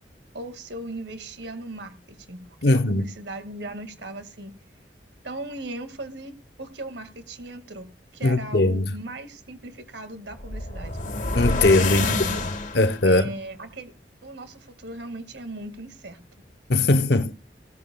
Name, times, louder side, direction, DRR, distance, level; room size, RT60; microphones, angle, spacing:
voice 1, 0.3-4.6 5.2-6.3 6.6-11.0 11.9-12.4 13.1-13.9 14.2-16.2, right 1 dB, 75° right, 2.0 m, -38 dB
voice 2, 2.6-3.1 8.2-8.9 11.3-12.1 12.7-13.3 16.7-17.3, left 2 dB, 65° left, 0.8 m, -20 dB
sound 1, 10.3-13.1, left 2 dB, 45° left, 1.7 m, -27 dB
17.0 x 14.5 x 2.3 m
head